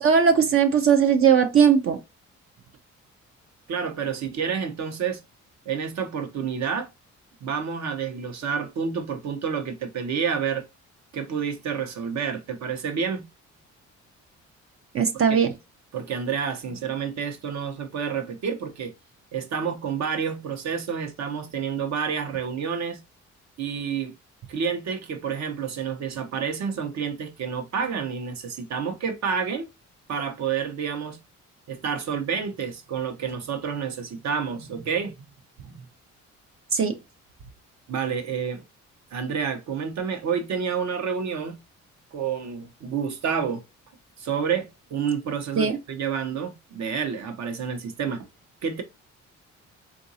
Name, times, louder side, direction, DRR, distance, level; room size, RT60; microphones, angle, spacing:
voice 1, 0.0-2.0 14.9-15.5 36.7-36.9 45.6-45.8, right 7 dB, 45° right, 0.5 m, -19 dB
voice 2, 3.7-5.2 5.7-6.9 7.4-10.7 11.1-13.2 15.9-18.9 19.3-23.0 23.6-24.1 24.5-29.7 30.1-31.2 31.7-35.1 35.6-35.8 37.9-38.6 39.1-41.6 42.1-43.6 44.2-48.3 48.6-48.8, right 6 dB, 65° right, 0.9 m, -29 dB
3.8 x 2.5 x 2.7 m
cardioid pair, 90°, 30 cm